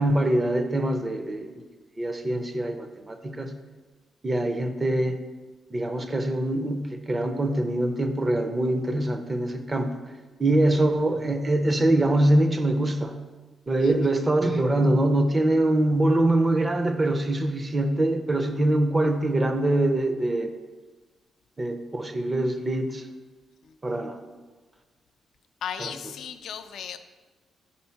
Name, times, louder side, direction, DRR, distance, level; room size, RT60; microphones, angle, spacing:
voice 1, 0.0-1.6 2.0-3.5 4.2-5.2 5.7-9.9 10.4-13.2 13.7-20.5 21.6-23.1 23.8-24.2 25.8-25.9, right 1 dB, 20° right, 7 dB, 0.4 m, -24 dB
voice 2, 25.6-27.0, left 8 dB, 65° left, 10 dB, 0.3 m, -36 dB
4.5 x 4.3 x 5.6 m, 1.3 s
wide cardioid pair, 170°, 0 cm